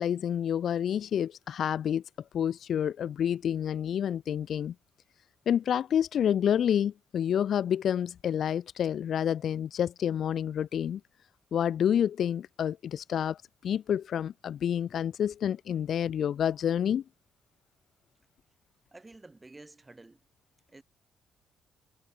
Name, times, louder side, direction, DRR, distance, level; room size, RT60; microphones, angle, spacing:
voice 1, 0.0-2.0 2.3-4.7 5.5-11.0 11.5-13.4 13.6-17.0, left 9 dB, 65° left, 0.5 m, -28 dB
voice 2, 18.9-20.2 20.7-20.8, right 2 dB, 20° right, 2.6 m, -51 dB
cardioid pair, 90°, 0 cm